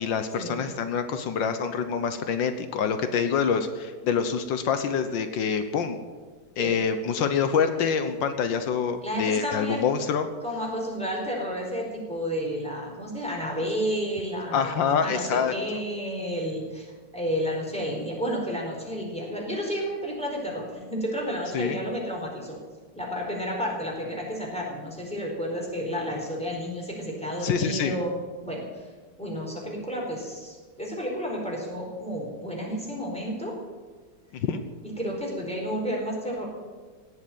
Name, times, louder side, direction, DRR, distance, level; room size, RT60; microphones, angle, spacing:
voice 1, 0.0-6.0 6.6-10.3 14.5-15.5 21.5-21.8 27.4-27.9 34.3-34.6, left 6 dB, 80° left, 9 dB, 1.7 m, -26 dB
voice 2, 9.0-9.8 10.4-16.9 17.1-22.6 22.9-28.1 28.4-28.9 29.2-33.5 35.0-36.4, equal, 5° left, -2 dB, 4.6 m, -31 dB
17.5 x 8.1 x 9.3 m, 1.4 s
omnidirectional pair, 2.0 m